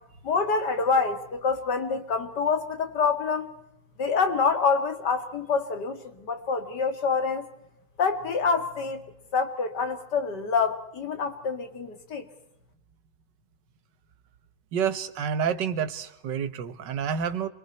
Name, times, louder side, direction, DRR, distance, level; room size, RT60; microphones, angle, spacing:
voice 1, 0.2-3.5 4.0-7.5 8.0-9.0 9.3-12.3, left 5 dB, 70° left, 7 dB, 2.6 m, -26 dB
voice 2, 14.7-17.5, right 7 dB, 75° right, 11 dB, 1.8 m, -28 dB
28.0 x 22.5 x 4.3 m, 0.80 s
omnidirectional pair, 1.9 m